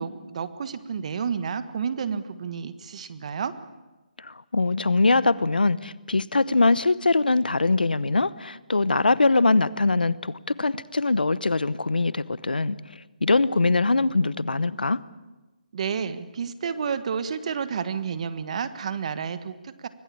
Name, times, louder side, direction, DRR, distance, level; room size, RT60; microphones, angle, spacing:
voice 1, 0.0-3.5 15.7-19.9, right 6 dB, 45° right, 12 dB, 1.5 m, -30 dB
voice 2, 4.2-15.0, left 3 dB, 90° left, 19 dB, 0.9 m, -22 dB
24.5 x 18.0 x 8.6 m, 1.1 s
figure-of-eight pair, 155°, 5 cm